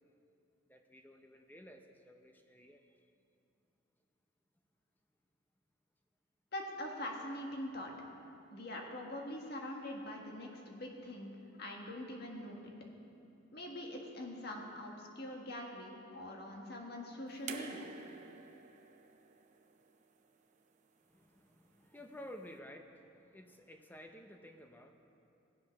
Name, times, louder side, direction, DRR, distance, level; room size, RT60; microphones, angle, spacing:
voice 1, 0.7-3.0 21.0-24.9, equal, 10° left, 4 dB, 0.7 m, -53 dB
voice 2, 6.5-7.9 8.5-12.7 13.5-17.8, left 1 dB, 55° left, 0 dB, 1.6 m, -43 dB
sound 1, 17.5-20.6 21.8-21.9, right 5 dB, 40° right, 0.7 m, -49 dB
17.5 x 7.7 x 6.0 m, 2.7 s
head